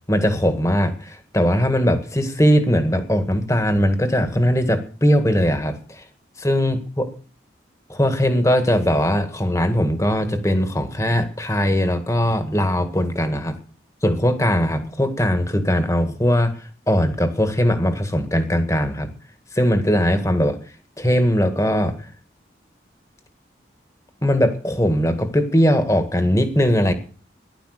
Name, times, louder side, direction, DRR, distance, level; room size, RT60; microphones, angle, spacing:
voice 1, 0.1-6.0 6.4-7.1 7.9-13.6 14.0-16.6 16.9-19.1 19.5-20.6 21.0-21.9 24.2-26.9, equal, 15° left, 9 dB, 1.9 m, -20 dB
15.0 x 11.5 x 6.6 m, 0.39 s
head